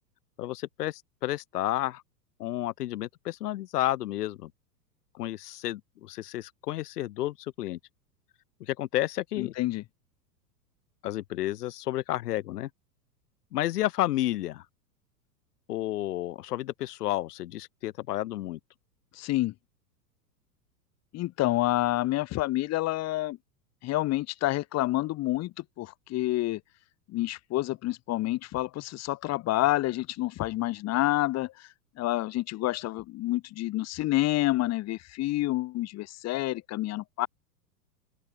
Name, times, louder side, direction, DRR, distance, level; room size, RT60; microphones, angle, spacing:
voice 1, 0.4-2.0 2.4-4.5 5.1-7.8 8.6-9.5 11.0-12.7 13.5-14.6 15.7-18.6, left 14 dB, 70° left, 0.6 m, -31 dB
voice 2, 9.4-9.8 19.1-19.5 21.1-23.4 23.8-26.6 27.1-31.7 32.0-37.3, left 17 dB, 30° left, 1.5 m, -28 dB
open air
figure-of-eight pair, 95°, 49 cm